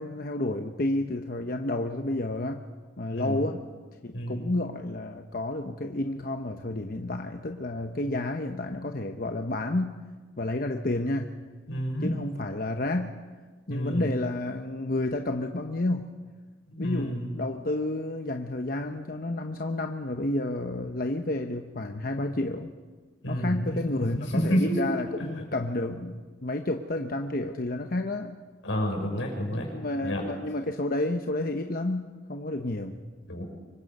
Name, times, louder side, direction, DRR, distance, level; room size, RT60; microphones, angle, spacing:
voice 1, 0.0-2.6 3.0-3.6 4.0-10.0 10.4-11.3 12.0-13.1 13.7-16.1 16.8-22.7 23.3-28.4 29.7-33.0, left 2 dB, 50° left, 5 dB, 0.9 m, -30 dB
voice 2, 11.7-12.1 13.7-14.1 16.7-17.3 23.2-24.9 28.6-29.7 30.0-30.2 33.3-33.4, equal, 90° left, 1 dB, 6.2 m, -29 dB
25.0 x 22.5 x 5.4 m, 1.4 s
head